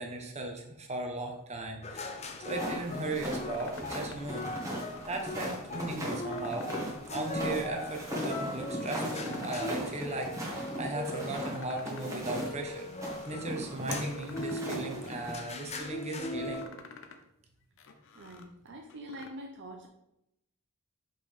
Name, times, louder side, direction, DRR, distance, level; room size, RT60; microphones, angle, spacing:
voice 1, 0.0-2.2 2.4-4.5 5.0-6.7 7.1-10.3 10.8-12.9 13.2-16.6, right 2 dB, 30° right, 2 dB, 1.1 m, -37 dB
sound 1, 1.8-16.7, left 2 dB, 30° left, 0.7 m, -40 dB
sound 2, 2.2-2.9 3.2-4.3 4.7-5.6 6.0-7.0 7.3-8.2 8.6-9.5 9.8-10.8 11.2-12.2 12.5-13.5 13.9-14.8 15.1-15.9 16.3-17.2 17.6-19.3, left 4 dB, 65° left, 0.8 m, -52 dB
sound 3, 2.5-15.3, equal, 15° right, 1.6 m, -38 dB
voice 2, 18.1-19.9, right 1 dB, 55° right, 2 dB, 0.7 m, -45 dB
6.5 x 5.4 x 3.5 m, 0.82 s
head